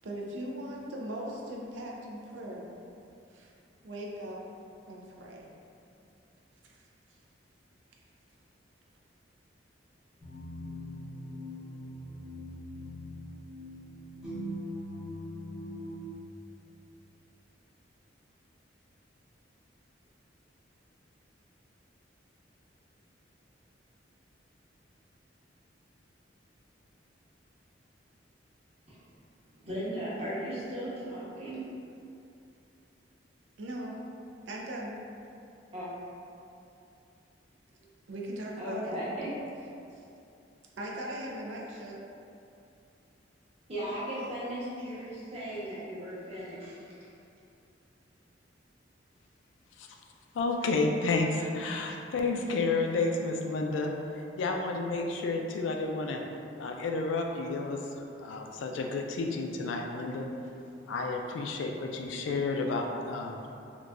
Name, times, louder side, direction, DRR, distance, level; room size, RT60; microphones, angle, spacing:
voice 1, 0.0-2.7 3.3-3.5 3.8-4.4 4.9-5.5 33.6-33.9 34.5-34.9 37.7-38.9 40.8-42.0, right 1 dB, 80° right, -2 dB, 0.4 m, -39 dB
sound 1, 10.2-16.1, equal, ahead, 0.8 m, -41 dB
voice 2, 29.6-31.7 35.7-35.9 38.6-39.4 43.7-47.1, equal, 35° right, -10 dB, 0.9 m, -37 dB
voice 3, 50.3-56.2 56.6-57.8 58.2-60.3 60.9-63.5, left 3 dB, 85° left, 2 dB, 0.3 m, -31 dB
3.9 x 2.2 x 2.4 m, 2.6 s
head